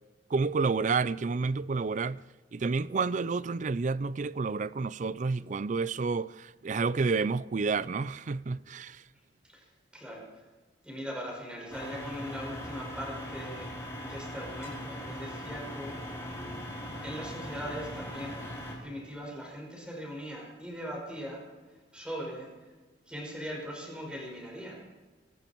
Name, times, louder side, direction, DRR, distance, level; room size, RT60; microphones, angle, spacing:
voice 1, 0.3-2.2 2.5-9.0, right 4 dB, 45° right, 0.4 m, -30 dB
voice 2, 9.9-10.4 10.8-13.7 14.0-16.0 17.0-18.4 18.8-21.5 21.9-22.5 23.1-24.9, equal, 5° right, 5.7 m, -40 dB
sound 1, 11.7-18.7, equal, 15° left, 5.2 m, -40 dB
25.0 x 12.5 x 4.6 m
head